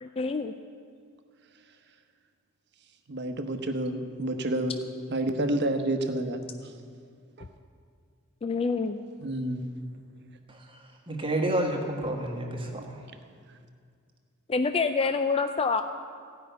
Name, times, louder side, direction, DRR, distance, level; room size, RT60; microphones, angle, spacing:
voice 1, 0.0-0.5 8.4-9.0 14.5-15.8, left 4 dB, 25° left, 8 dB, 0.3 m, -26 dB
voice 2, 3.1-4.7 5.1-6.4 9.2-9.7, right 1 dB, 50° right, 7 dB, 1.0 m, -29 dB
voice 3, 11.1-12.9, right 1 dB, 25° right, 1 dB, 1.5 m, -30 dB
15.0 x 5.8 x 9.2 m, 2.1 s
head